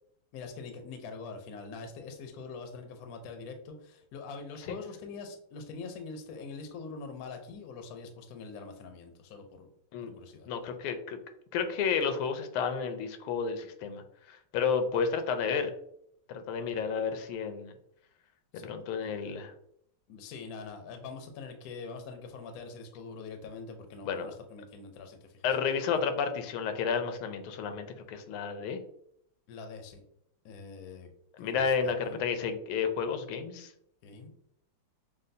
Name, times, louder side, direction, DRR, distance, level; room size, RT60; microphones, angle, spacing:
voice 1, 0.3-9.7 10.0-10.5 18.5-18.7 20.1-25.5 25.9-26.0 29.5-30.0 30.4-31.1 31.4-32.2 34.0-34.3, left 4 dB, 65° left, 5 dB, 0.9 m, -44 dB
voice 2, 10.5-11.2 11.5-15.7 16.3-17.7 18.5-19.5 24.0-24.3 25.4-28.8 31.4-33.7, left 6 dB, 85° left, 8 dB, 1.5 m, -31 dB
6.5 x 2.3 x 2.6 m, 0.73 s
omnidirectional pair, 2.3 m